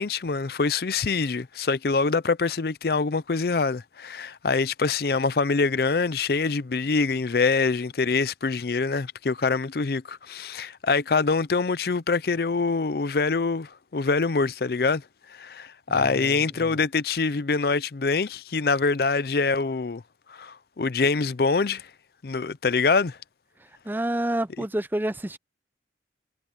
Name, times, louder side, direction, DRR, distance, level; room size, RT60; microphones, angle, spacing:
voice 1, 0.0-15.0 15.4-20.0 20.3-21.9 22.2-23.2, left 4 dB, 55° left, 0.5 m, -25 dB
voice 2, 15.9-16.8 23.8-25.4, right 1 dB, 10° right, 0.5 m, -29 dB
head